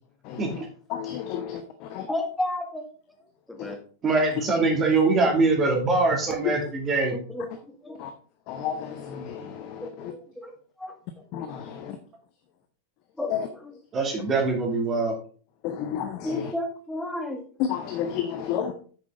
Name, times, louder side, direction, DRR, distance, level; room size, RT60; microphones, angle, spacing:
voice 1, 0.2-0.6 0.9-2.1 3.6-3.7 6.4-6.6 8.0-8.1 8.5-10.1 11.3-12.0 13.3-13.5 15.6-16.5 17.6-18.7, left 9 dB, 40° left, 9 dB, 0.9 m, -31 dB
voice 2, 2.1-2.9 3.5-3.8 7.1-7.5 7.8-8.0 9.8-10.9 13.2-13.3 16.2-17.4 18.7-18.8, left 1 dB, 5° left, 3 dB, 2.0 m, -32 dB
voice 3, 4.0-7.2 13.9-15.1, right 3 dB, 25° right, 2 dB, 2.7 m, -23 dB
8.7 x 7.4 x 3.9 m, 0.40 s
figure-of-eight pair, 90°, 0 cm